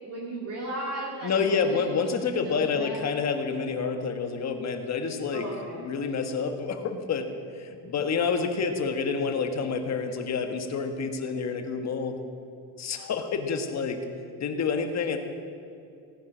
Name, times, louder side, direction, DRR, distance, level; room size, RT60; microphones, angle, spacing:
voice 1, 0.0-3.1 5.3-5.8, right 1 dB, 40° right, -4 dB, 2.4 m, -36 dB
voice 2, 1.2-5.5 5.8-7.3 7.5-12.2 12.8-14.0 14.4-15.2, left 5 dB, 45° left, 6 dB, 1.4 m, -28 dB
17.0 x 9.5 x 6.2 m, 2.5 s
cardioid pair, 140°, 39 cm